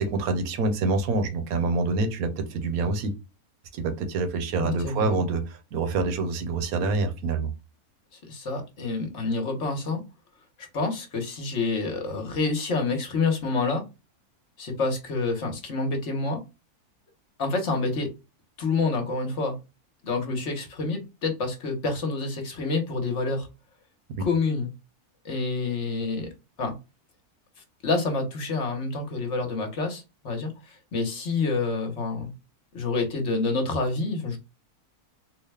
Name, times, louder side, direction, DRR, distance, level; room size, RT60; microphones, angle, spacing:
voice 1, 0.0-3.1 3.7-7.5, right 3 dB, 65° right, 7 dB, 1.2 m, -26 dB
voice 2, 4.6-5.2 8.3-10.0 10.6-13.8 14.6-16.4 17.4-18.1 18.6-19.6 20.0-23.5 24.2-24.7 25.2-26.3 26.6-26.8 27.8-32.3 32.7-34.4, left 3 dB, 50° left, 3 dB, 1.3 m, -28 dB
4.0 x 2.2 x 3.3 m, 0.26 s
omnidirectional pair, 1.7 m